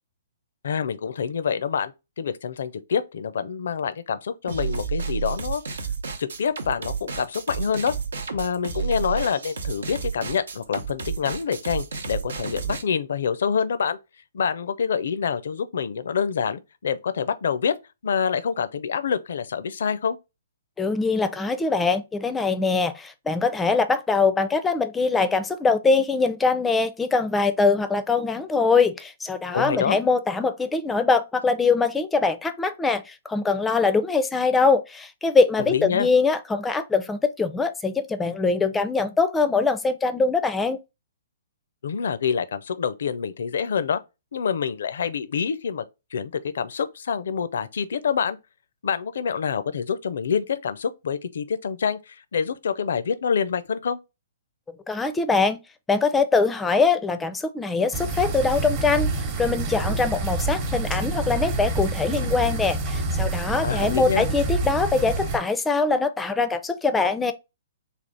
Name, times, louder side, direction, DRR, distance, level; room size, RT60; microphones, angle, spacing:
voice 1, 0.6-5.6 6.2-7.9 8.3-14.0 14.3-17.8 18.0-20.2 29.5-30.0 35.7-36.1 41.8-44.0 44.3-45.8 46.1-48.4 48.8-54.0 63.6-64.3, left 6 dB, 70° left, 0.4 m, -26 dB
sound 1, 4.5-12.8, right 5 dB, 75° right, 0.8 m, -31 dB
voice 2, 20.8-40.8 54.9-55.6 55.9-59.1 59.4-67.3, left 4 dB, 10° left, 0.4 m, -23 dB
sound 2, 57.9-65.4, right 2 dB, 35° right, 0.9 m, -27 dB
3.5 x 2.4 x 3.9 m
hypercardioid pair, 130°, 0 cm